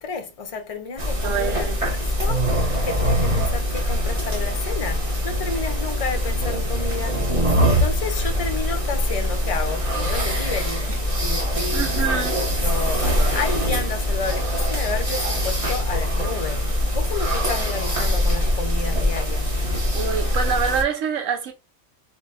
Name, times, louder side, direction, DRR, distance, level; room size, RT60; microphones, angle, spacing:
voice 1, 0.0-1.7 2.0-7.3 7.6-12.3 12.6-19.5, left 5 dB, 45° left, 0.5 m, -31 dB
sound 1, 1.0-20.8, equal, 25° right, 1.1 m, -23 dB
voice 2, 1.2-1.8 11.7-12.4 19.9-21.5, right 6 dB, 80° right, 1.1 m, -25 dB
4.8 x 2.7 x 2.4 m
omnidirectional pair, 1.4 m